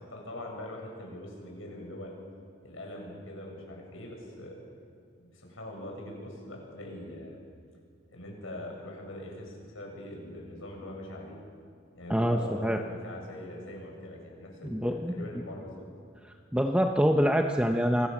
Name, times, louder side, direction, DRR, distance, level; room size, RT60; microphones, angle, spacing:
voice 1, 0.0-2.1 2.6-4.6 5.1-7.4 8.1-11.4 11.9-15.8, left 1 dB, 85° left, 0 dB, 7.9 m, -42 dB
voice 2, 12.1-12.8 14.7-15.1 16.5-18.1, equal, 5° right, 3 dB, 0.9 m, -25 dB
29.0 x 23.5 x 7.4 m, 2.2 s
head